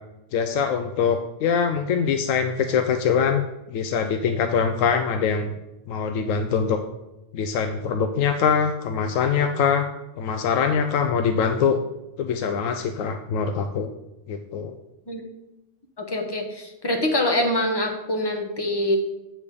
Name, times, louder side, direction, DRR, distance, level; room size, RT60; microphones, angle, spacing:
voice 1, 0.3-5.5 5.9-6.8 7.3-9.9 10.2-11.8 12.2-13.9 14.3-14.7, left 6 dB, 80° left, 6 dB, 1.0 m, -23 dB
voice 2, 16.0-19.0, left 1 dB, 20° left, 4 dB, 0.9 m, -24 dB
8.6 x 3.5 x 6.6 m, 0.98 s
omnidirectional pair, 1.3 m